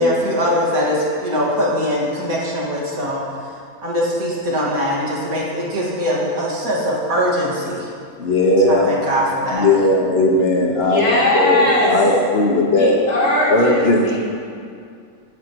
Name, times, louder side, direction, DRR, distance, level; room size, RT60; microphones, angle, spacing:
voice 1, 0.0-3.2 3.8-7.9 8.7-9.7, equal, 70° right, -4 dB, 2.4 m, -21 dB
voice 2, 8.2-8.9 9.5-11.0 11.3-13.0 13.5-14.2, left 2 dB, 45° left, 1 dB, 1.4 m, -16 dB
voice 3, 10.8-12.1 12.8-14.2, left 1 dB, 85° left, -8 dB, 3.7 m, -19 dB
14.5 x 10.0 x 3.0 m, 2.3 s
omnidirectional pair, 1.6 m